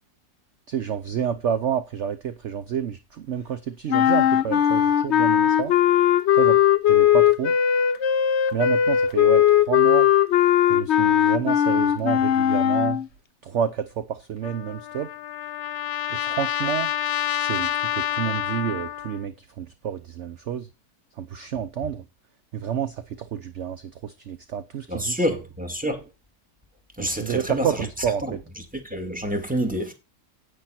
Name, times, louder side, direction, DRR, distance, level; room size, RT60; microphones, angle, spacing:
voice 1, 0.7-5.7 6.4-6.6 6.9-7.6 8.5-10.1 10.7-13.0 13.4-15.1 16.1-16.9 17.3-20.7 21.2-22.0 22.5-25.3 27.0-28.4, right 8 dB, 55° right, 0.9 m, -29 dB
sound 1, 3.9-13.1, left 10 dB, 55° left, 0.9 m, -19 dB
Trumpet, 14.4-19.2, left 11 dB, 75° left, 1.2 m, -28 dB
voice 2, 24.9-26.0 27.0-27.7 28.8-29.9, equal, 5° right, 2.1 m, -27 dB
10.0 x 9.1 x 4.3 m
omnidirectional pair, 1.6 m